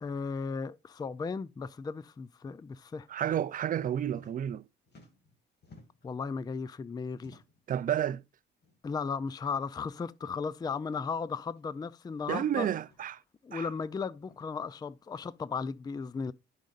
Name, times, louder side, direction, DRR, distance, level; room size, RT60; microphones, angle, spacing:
voice 1, 0.0-3.1 6.0-7.4 8.8-12.7 13.4-16.3, left 5 dB, 20° left, 0.4 m, -36 dB
voice 2, 3.1-4.7 7.7-8.2 12.3-13.2 13.5-13.7, right 10 dB, 45° right, 0.4 m, -31 dB
sound 1, 3.2-3.5 3.7-4.6 4.8-6.1 7.1-7.7 8.6-8.8 9.1-9.2 10.1-10.4 11.5-11.6 12.8-13.1 14.2-14.4, left 2 dB, 55° left, 2.4 m, -58 dB
10.0 x 5.3 x 2.4 m
cardioid pair, 90°, 20 cm